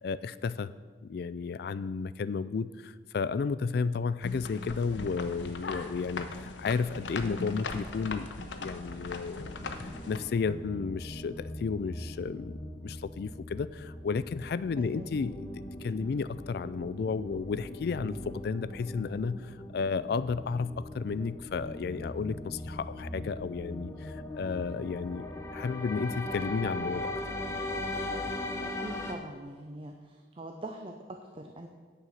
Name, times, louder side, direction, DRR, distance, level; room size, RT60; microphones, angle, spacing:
voice 1, 0.0-0.7 1.0-8.3 8.6-9.5 10.1-15.5 15.8-25.3 25.5-27.1, left 5 dB, 60° left, 16 dB, 0.3 m, -33 dB
sound 1, 4.2-10.2, left 3 dB, 85° left, 0.8 m, -39 dB
sound 2, 9.3-29.1, left 1 dB, 15° left, 0.9 m, -40 dB
voice 2, 14.8-15.1 28.6-31.7, right 1 dB, 30° right, 4 dB, 0.6 m, -43 dB
9.0 x 6.7 x 6.3 m, 1.5 s
head